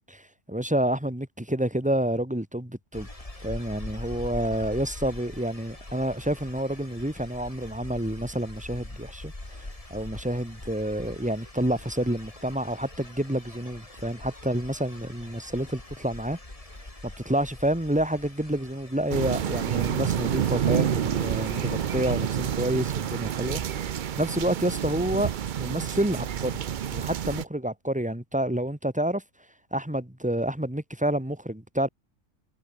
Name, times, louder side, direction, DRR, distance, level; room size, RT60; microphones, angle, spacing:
voice 1, 0.1-3.1 3.4-16.4 17.0-25.3 25.6-26.6 26.9-29.2 29.7-31.9, right 1 dB, 5° right, 2.4 m, -29 dB
sound 1, 2.9-22.2, left 2 dB, 25° left, 3.2 m, -43 dB
sound 2, 19.1-27.4, right 9 dB, 50° right, 0.6 m, -28 dB
omnidirectional pair, 1.3 m